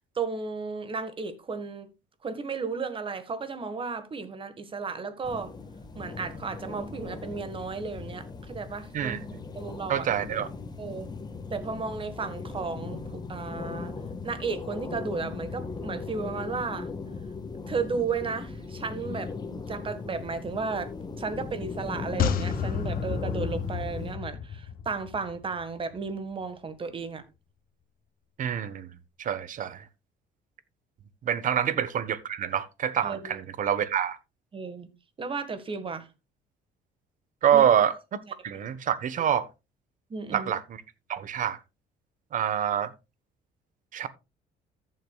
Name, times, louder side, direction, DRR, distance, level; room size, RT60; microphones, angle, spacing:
voice 1, 0.2-1.9 2.2-5.5 6.0-9.2 9.6-10.1 10.8-11.1 11.5-13.9 14.2-16.9 17.7-19.3 19.7-20.9 21.2-27.2 33.0-33.4 34.5-34.9 35.2-36.1 37.5-37.6 38.5-38.6 40.1-40.5, right 4 dB, 30° right, 1.7 m, -34 dB
sound 1, 5.2-24.2, left 4 dB, 25° left, 1.5 m, -38 dB
voice 2, 9.9-10.5 28.4-28.9 29.2-29.8 31.2-34.2 37.4-38.2 38.4-39.5 40.3-40.8 41.1-41.6 42.3-42.9 43.9-44.1, right 9 dB, 50° right, 1.2 m, -26 dB
sound 2, 22.2-25.6 25.9-26.0, left 7 dB, 60° left, 1.3 m, -31 dB
14.0 x 7.7 x 2.4 m
cardioid pair, 110°, 17 cm